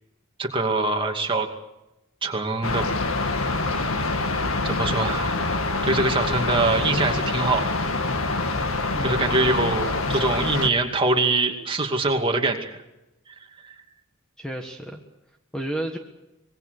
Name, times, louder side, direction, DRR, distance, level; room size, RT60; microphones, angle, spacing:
voice 1, 0.4-1.5 2.2-2.9 4.6-5.4 5.8-7.7 9.0-12.7 13.6-13.7, right 3 dB, 25° right, 3 dB, 2.5 m, -23 dB
sound 1, 2.6-10.7, left 3 dB, 80° left, 1.9 m, -25 dB
voice 2, 8.9-9.5 14.4-15.0 15.5-16.0, right 1 dB, 5° left, 3 dB, 1.5 m, -32 dB
25.5 x 21.0 x 6.7 m, 0.93 s
head